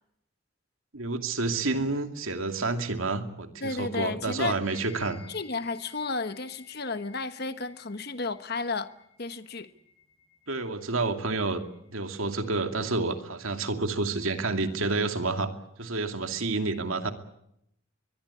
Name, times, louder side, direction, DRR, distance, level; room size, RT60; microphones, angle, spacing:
voice 1, 0.9-5.2 10.5-11.6 11.9-15.5 15.8-17.1, right 3 dB, 80° right, 2.5 m, -29 dB
voice 2, 3.6-4.6 5.3-8.9 9.2-9.7, left 3 dB, 50° left, 1.2 m, -32 dB
sound 1, 4.6-13.3, left 6 dB, 25° left, 7.1 m, -57 dB
23.0 x 22.5 x 8.5 m
head